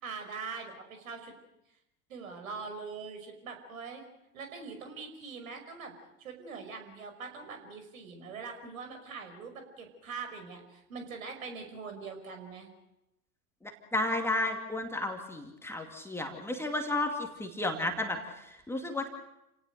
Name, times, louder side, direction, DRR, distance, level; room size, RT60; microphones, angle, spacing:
voice 1, 0.0-1.3 2.1-4.0 4.3-5.9 6.2-12.7, right 5 dB, 60° right, 5 dB, 5.7 m, -42 dB
voice 2, 13.6-19.1, left 2 dB, 5° left, 3 dB, 2.4 m, -33 dB
29.0 x 18.0 x 6.7 m, 0.91 s
figure-of-eight pair, 95°, 45 cm